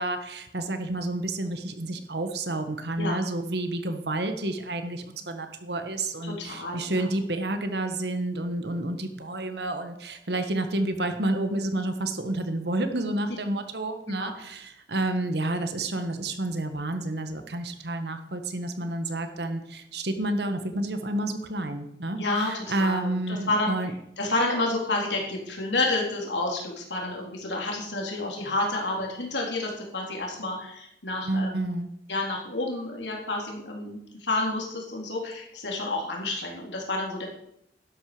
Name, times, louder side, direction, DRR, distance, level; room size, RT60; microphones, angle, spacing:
voice 1, 0.0-23.9 31.2-31.9, right 2 dB, 70° right, 8 dB, 1.6 m, -30 dB
voice 2, 6.2-7.0 14.2-14.3 22.2-23.7 24.2-31.7 32.1-37.2, left 2 dB, 90° left, -1 dB, 3.6 m, -29 dB
12.0 x 11.5 x 5.1 m, 0.78 s
head